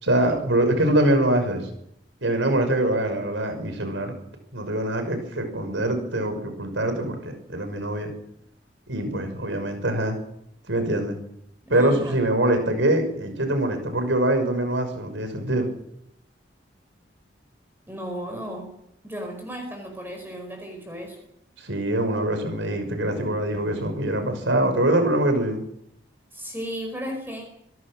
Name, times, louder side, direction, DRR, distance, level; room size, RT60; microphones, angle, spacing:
voice 1, 0.0-1.7 2.2-4.2 4.5-8.1 8.9-10.2 10.7-11.2 11.7-15.7 21.6-25.6, right 1 dB, 90° right, 7 dB, 6.1 m, -24 dB
voice 2, 11.7-12.2 17.9-18.7 19.0-21.2 26.3-27.5, equal, 10° right, 3 dB, 4.8 m, -34 dB
26.0 x 17.5 x 6.5 m, 0.77 s
head